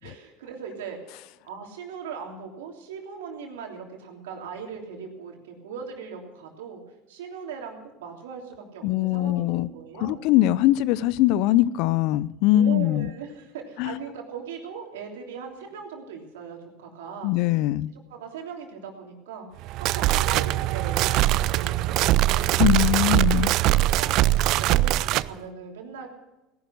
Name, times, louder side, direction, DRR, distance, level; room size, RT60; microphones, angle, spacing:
voice 1, 0.0-1.2 1.4-6.8 7.1-10.2 12.5-17.3 18.1-22.6 23.5-26.1, right 6 dB, 80° right, 3.3 m, -39 dB
voice 2, 8.8-9.7 10.0-13.1 13.8-14.0 17.2-17.9 22.6-23.5, left 14 dB, 65° left, 0.6 m, -22 dB
sound 1, 19.6-25.3, right 15 dB, 60° right, 0.5 m, -22 dB
17.5 x 11.5 x 6.4 m
hypercardioid pair, 80°, 0 cm